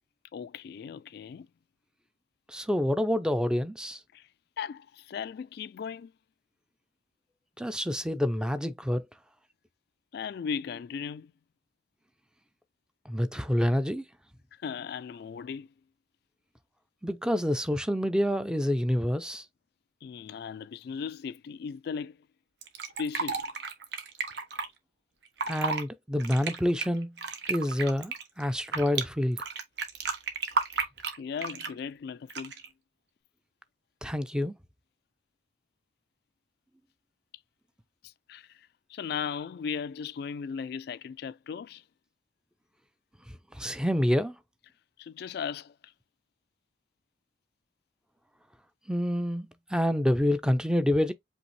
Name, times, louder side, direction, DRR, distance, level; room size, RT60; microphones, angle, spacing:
voice 1, 0.3-1.5 4.1-4.3 4.6-6.1 10.1-11.3 14.5-15.7 20.0-22.3 23.0-23.5 31.2-32.5 38.0-41.8 45.0-45.9, left 6 dB, 60° left, 0.3 m, -37 dB
voice 2, 2.5-4.0 7.6-9.0 13.1-14.0 17.0-19.4 25.5-27.2 27.5-29.4 34.0-34.6 43.5-44.4 48.9-51.1, equal, 5° right, 0.4 m, -27 dB
Fill (with liquid), 22.6-24.7 25.3-25.8 26.2-29.0 29.4-31.8 32.3-32.7, right 5 dB, 75° right, 1.1 m, -32 dB
5.2 x 2.8 x 3.1 m
head